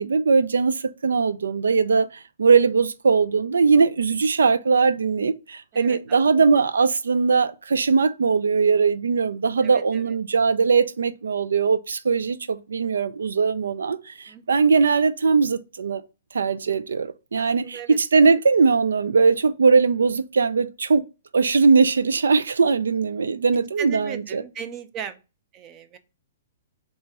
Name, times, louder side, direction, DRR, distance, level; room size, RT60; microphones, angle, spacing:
voice 1, 0.0-2.1 2.4-16.0 16.3-21.0 21.3-24.4, right 5 dB, 85° right, 0.3 m, -20 dB
voice 2, 5.7-6.2 9.6-10.2 14.3-14.4 17.4-18.0 23.8-25.2 25.5-26.0, right 8 dB, 30° right, 0.5 m, -37 dB
3.9 x 2.4 x 4.6 m
hypercardioid pair, 130°, 0 cm